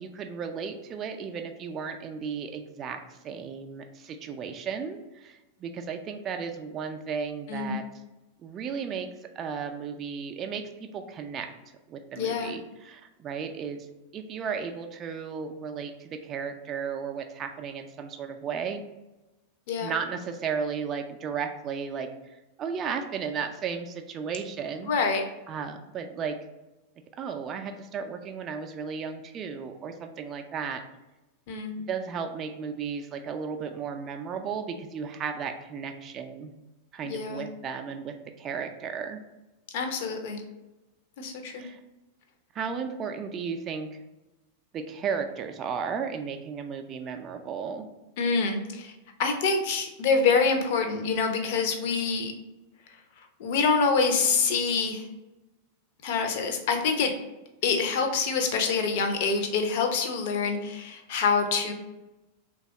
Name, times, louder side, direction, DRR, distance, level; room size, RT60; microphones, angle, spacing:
voice 1, 0.0-7.8 8.4-9.1 9.4-11.5 11.9-13.9 14.1-18.8 19.8-24.9 25.5-26.4 27.1-30.8 31.9-36.5 36.9-39.2 41.6-41.8 42.5-43.9 44.7-47.9, right 6 dB, 30° right, 5 dB, 0.3 m, -34 dB
voice 2, 7.5-7.8 12.2-12.5 19.7-19.9 24.9-25.2 31.5-31.7 37.0-37.4 39.7-40.4 41.2-41.6 48.2-48.9 49.2-52.3 53.4-55.0 56.0-57.1 57.6-61.7, left 5 dB, 50° left, 5 dB, 0.5 m, -26 dB
3.3 x 2.3 x 3.8 m, 1.0 s
figure-of-eight pair, 90°, 0 cm